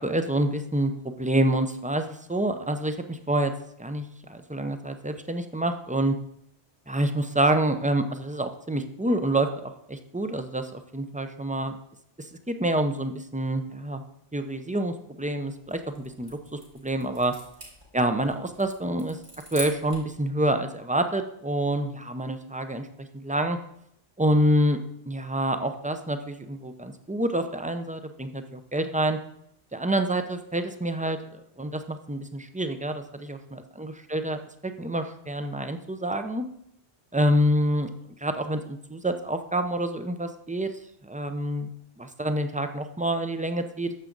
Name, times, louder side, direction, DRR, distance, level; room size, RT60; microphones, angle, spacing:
voice 1, 0.0-3.5 3.8-6.2 6.9-11.8 12.2-14.0 14.3-17.3 17.9-19.2 19.5-23.6 24.2-24.8 25.1-29.2 29.7-36.4 37.1-37.9 38.2-40.7 41.0-41.7 42.0-43.9, right 1 dB, 10° right, 7 dB, 0.4 m, -27 dB
sound 1, 15.6-20.2, equal, 65° right, 3.8 m, -43 dB
11.0 x 7.2 x 3.9 m, 0.74 s
omnidirectional pair, 1.0 m